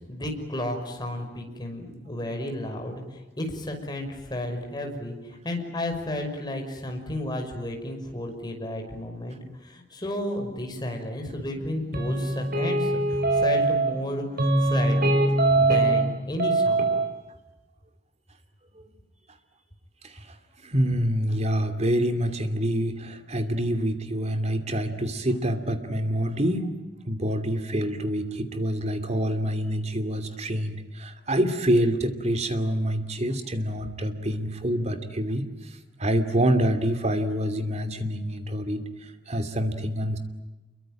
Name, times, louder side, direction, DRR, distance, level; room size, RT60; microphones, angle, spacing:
voice 1, 0.1-15.2 15.5-16.9, left 1 dB, 25° left, 3 dB, 5.7 m, -33 dB
sound 1, 11.9-14.0 14.4-16.1 16.4-17.0, right 2 dB, 55° right, 5.2 m, -22 dB
voice 2, 20.0-20.3 20.6-26.7 27.0-40.2, equal, 35° right, 8 dB, 2.7 m, -26 dB
28.5 x 23.0 x 9.1 m, 1.1 s
head